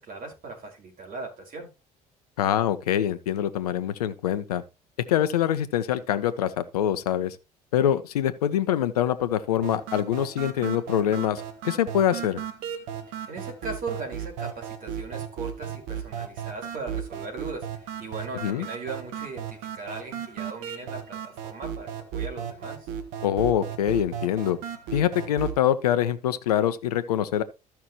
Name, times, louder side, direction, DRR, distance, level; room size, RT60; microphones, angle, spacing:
voice 1, 0.0-1.7 13.1-22.9, right 3 dB, 45° right, 4.9 m, -38 dB
voice 2, 2.4-4.6 5.1-7.4 7.7-12.4 18.4-18.7 23.2-24.6 24.9-27.4, left 10 dB, 80° left, 0.9 m, -24 dB
sound 1, 9.6-25.6, right 9 dB, 70° right, 1.5 m, -35 dB
14.5 x 5.9 x 3.0 m
hypercardioid pair, 55°, 19 cm